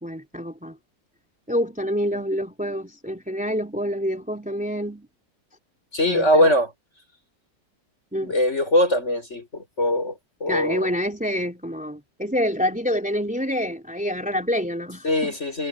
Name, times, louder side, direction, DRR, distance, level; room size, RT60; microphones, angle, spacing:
voice 1, 0.0-0.8 1.5-5.1 6.1-6.5 8.1-8.3 10.5-15.3, equal, 5° right, 3.7 m, -27 dB
voice 2, 5.9-6.7 8.2-10.1 10.4-10.9 15.0-15.7, left 1 dB, 35° left, 6.7 m, -21 dB
omnidirectional pair, 2.0 m